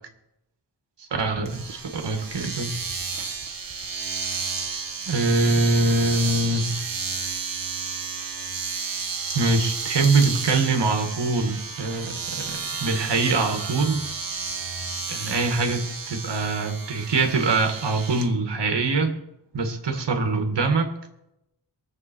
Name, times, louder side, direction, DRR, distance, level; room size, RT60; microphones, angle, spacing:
voice 1, 1.0-2.7 5.1-6.8 9.3-14.0 15.1-19.2 19.5-20.9, right 3 dB, 75° right, 5 dB, 2.1 m, -23 dB
Domestic sounds home sounds, 1.4-18.3, right 5 dB, 50° right, 1.5 m, -32 dB
23.0 x 7.9 x 4.6 m, 0.85 s
wide cardioid pair, 95°, 42 cm